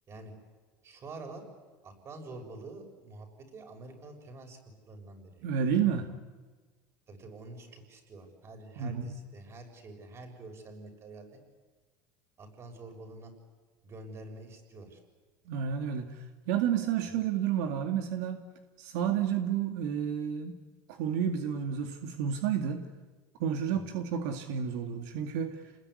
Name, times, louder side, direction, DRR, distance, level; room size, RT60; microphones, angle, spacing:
voice 1, 0.8-1.5 1.8-3.3 3.5-4.6 4.9-5.4 7.1-11.3 12.4-13.3 13.8-15.0 23.7-23.9, right 2 dB, 30° right, 4 dB, 6.7 m, -47 dB
voice 2, 5.4-6.1 8.8-9.1 15.5-16.2 16.5-18.4 18.8-20.6 20.9-22.8 23.4-25.6, right 8 dB, 80° right, 5 dB, 2.2 m, -30 dB
28.5 x 20.5 x 9.8 m, 1.4 s
supercardioid pair, 130°, 9 cm